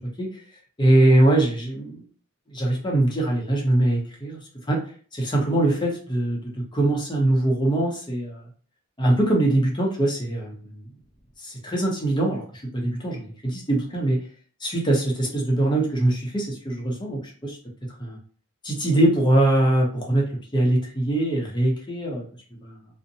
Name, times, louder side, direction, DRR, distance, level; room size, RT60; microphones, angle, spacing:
voice 1, 0.8-2.0 2.5-4.4 4.7-4.8 5.1-8.4 9.0-10.9 11.4-14.2 14.6-17.6 18.0-18.2 18.6-20.2 20.5-22.2 22.6-22.8, right 1 dB, 20° left, -1 dB, 0.6 m, -22 dB
2.6 x 2.0 x 2.7 m, 0.43 s
head